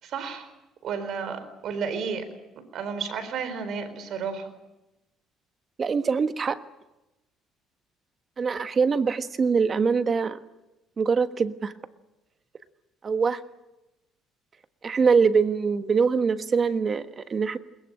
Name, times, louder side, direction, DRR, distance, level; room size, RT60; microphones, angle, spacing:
voice 1, 0.0-0.5 0.8-2.3 2.7-4.5, right 6 dB, 60° right, 10 dB, 4.4 m, -32 dB
voice 2, 5.8-6.6 8.4-10.4 11.0-11.7 13.0-13.4 14.8-17.6, right 5 dB, 35° right, 10 dB, 1.4 m, -23 dB
22.0 x 21.0 x 9.0 m, 0.96 s
cardioid pair, 115°, 0 cm